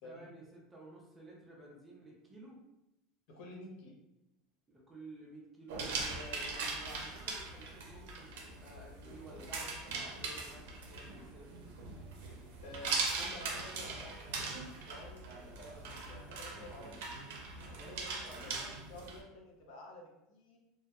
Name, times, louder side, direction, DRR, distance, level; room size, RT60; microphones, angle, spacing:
voice 1, 0.0-2.6 4.7-11.6, right 1 dB, 10° right, -3 dB, 0.4 m, -53 dB
voice 2, 3.3-3.9 12.6-17.2 17.8-20.6, left 1 dB, 55° left, -1 dB, 0.5 m, -51 dB
sound 1, 5.7-19.2, right 4 dB, 90° right, 0.5 m, -41 dB
2.2 x 2.0 x 2.8 m, 0.91 s
cardioid pair, 170°, 0 cm